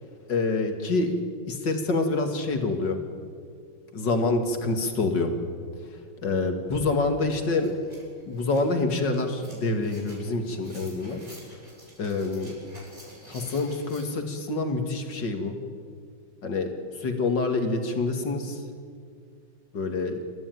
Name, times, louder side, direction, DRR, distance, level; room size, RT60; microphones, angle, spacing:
voice 1, 0.3-1.2 1.5-3.0 3.9-5.3 6.2-7.8 8.3-11.2 12.0-12.5 13.3-15.6 16.4-18.6 19.7-20.2, left 3 dB, 65° left, 5 dB, 2.7 m, -26 dB
sound 1, 6.7-6.8 7.1-14.0, right 1 dB, 20° right, 6.9 m, -49 dB
27.5 x 14.0 x 9.3 m, 2.1 s
omnidirectional pair, 2.1 m